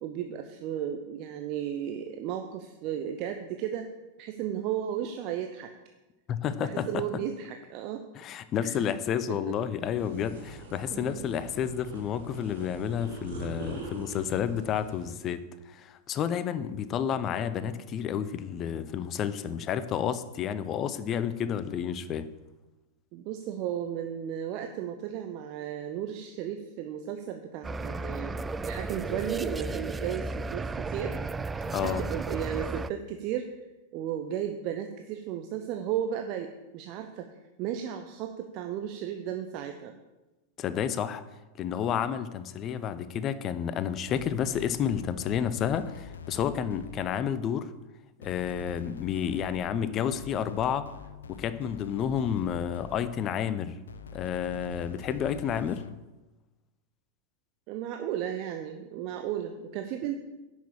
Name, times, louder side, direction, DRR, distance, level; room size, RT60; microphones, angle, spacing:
voice 1, 0.0-3.9 4.2-5.7 6.6-8.0 8.6-9.0 9.3-9.6 10.9-11.2 23.1-28.4 28.6-31.1 31.5-33.5 33.9-40.0 57.7-60.2, right 9 dB, 40° right, 6 dB, 0.7 m, -34 dB
voice 2, 6.3-6.9 8.2-15.4 15.7-22.3 31.7-32.0 40.6-41.2 41.6-47.7 48.2-50.9 51.3-53.7 54.1-55.8, left 8 dB, 30° left, 14 dB, 0.7 m, -30 dB
sound 1, 10.0-15.1, right 3 dB, 60° right, 3.6 m, -43 dB
sound 2, 27.6-32.9, right 3 dB, 15° right, 0.3 m, -34 dB
sound 3, 44.1-47.3 48.2-53.4 53.9-56.1, left 6 dB, 70° left, 0.6 m, -45 dB
10.5 x 6.4 x 7.2 m, 1.1 s
figure-of-eight pair, 90°, 0 cm